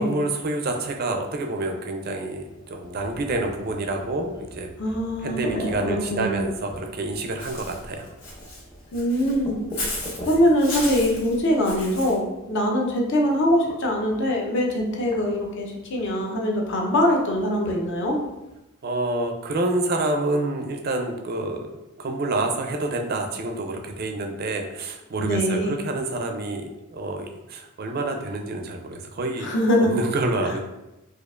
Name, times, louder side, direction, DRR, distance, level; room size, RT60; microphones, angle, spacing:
voice 1, 0.0-4.7 5.2-8.1 18.8-21.7 22.0-29.5 29.8-30.6, right 2 dB, 45° right, 4 dB, 0.4 m, -28 dB
sound 1, 2.2-18.6, equal, 20° left, 0.5 m, -41 dB
voice 2, 4.8-6.4 8.9-9.9 10.3-18.2 25.2-25.8 29.4-29.9, equal, 55° left, 0 dB, 0.7 m, -23 dB
Walk footsteps / Bird, 7.4-12.1, left 1 dB, 80° left, 1.4 m, -34 dB
4.4 x 2.4 x 2.4 m, 0.96 s
head